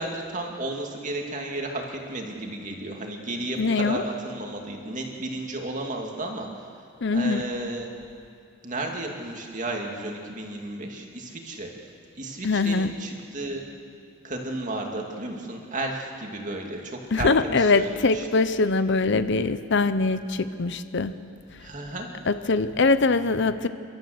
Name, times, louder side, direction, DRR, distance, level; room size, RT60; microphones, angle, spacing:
voice 1, 0.0-6.5 7.1-7.9 8.6-11.7 12.2-13.7 14.2-17.9 18.1-18.3 21.6-22.1, right 2 dB, 35° right, 1 dB, 2.5 m, -33 dB
voice 2, 3.6-4.0 7.0-7.4 12.4-12.9 17.1-21.1 22.3-23.7, left 3 dB, 55° left, 12 dB, 0.7 m, -22 dB
28.5 x 13.0 x 7.9 m, 2.5 s
head